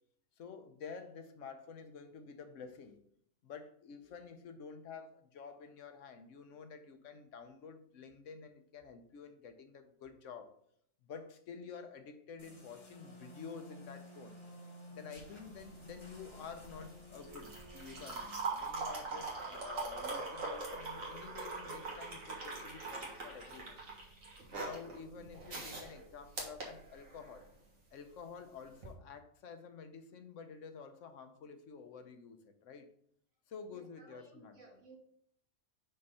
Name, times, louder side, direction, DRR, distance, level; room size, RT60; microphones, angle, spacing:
voice 1, 0.4-3.0 3.4-10.6 11.0-14.4 14.9-23.8 24.5-27.4 27.9-32.9 33.5-34.8, left 6 dB, 75° left, 8 dB, 1.0 m, -50 dB
sound 1, 12.4-18.3, equal, 25° left, 1.0 m, -54 dB
sound 2, 15.2-27.5 28.7-28.9, right 3 dB, 85° right, 1.9 m, -42 dB
voice 2, 33.7-35.0, right 3 dB, 65° right, -1 dB, 1.9 m, -58 dB
5.5 x 3.9 x 5.4 m, 0.68 s
omnidirectional pair, 1.4 m